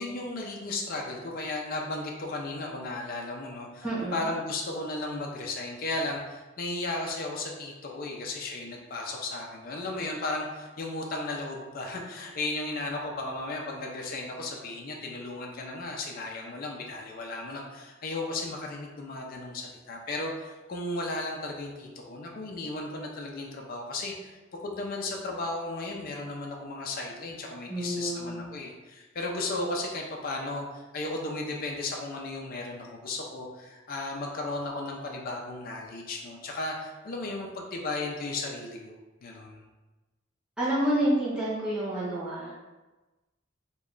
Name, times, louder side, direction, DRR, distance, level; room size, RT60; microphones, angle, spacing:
voice 1, 0.0-24.4 24.6-39.6, left 2 dB, 45° left, 0 dB, 0.4 m, -35 dB
voice 2, 3.8-4.3 27.7-28.4 40.6-42.7, right 1 dB, 5° right, -10 dB, 0.6 m, -29 dB
3.1 x 2.2 x 3.7 m, 1.2 s
head